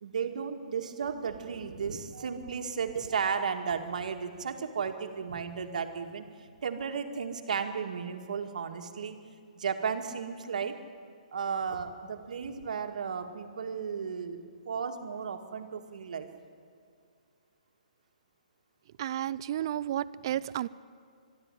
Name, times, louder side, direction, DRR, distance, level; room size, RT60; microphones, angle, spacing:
voice 1, 0.0-6.3 6.6-9.2 9.6-10.8 11.3-14.4 14.7-16.3, right 6 dB, 65° right, 6 dB, 2.0 m, -34 dB
voice 2, 19.0-20.7, right 11 dB, 35° right, 18 dB, 0.5 m, -32 dB
23.0 x 12.5 x 9.9 m, 2.2 s
hypercardioid pair, 170°, 4 cm